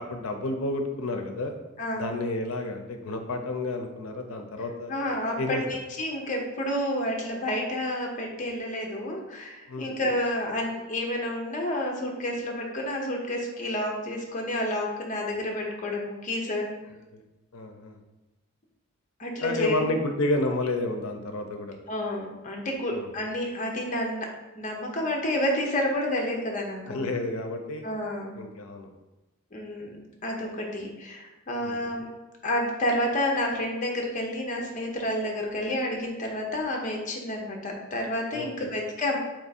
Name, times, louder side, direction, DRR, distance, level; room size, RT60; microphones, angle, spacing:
voice 1, 0.0-1.5 1.9-4.9 5.4-5.6 9.7-9.9 17.1-17.2 17.5-18.0 19.4-21.8 22.9-23.1 26.9-27.8 28.4-28.9 31.6-31.8 38.3-38.5, left 2 dB, 80° left, 5 dB, 0.6 m, -30 dB
voice 2, 1.8-2.2 4.9-16.7 19.2-20.0 21.9-24.3 24.5-27.1 27.8-28.4 29.5-29.9 30.2-32.0 32.4-39.2, left 1 dB, 35° left, 0 dB, 0.7 m, -30 dB
3.5 x 3.0 x 4.2 m, 1.0 s
head